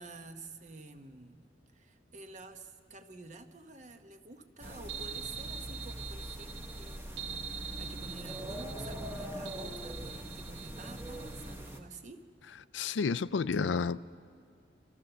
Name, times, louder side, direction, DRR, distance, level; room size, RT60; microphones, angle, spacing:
voice 1, 0.0-1.4 1.7-12.3, right 2 dB, 40° right, 8 dB, 1.0 m, -50 dB
sound 1, 4.6-11.8, equal, 15° right, 1.2 m, -42 dB
sound 2, 4.9-11.5, right 8 dB, 75° right, 1.5 m, -44 dB
voice 2, 12.7-14.0, left 5 dB, 85° left, 16 dB, 0.4 m, -30 dB
28.0 x 13.5 x 6.8 m, 2.3 s
head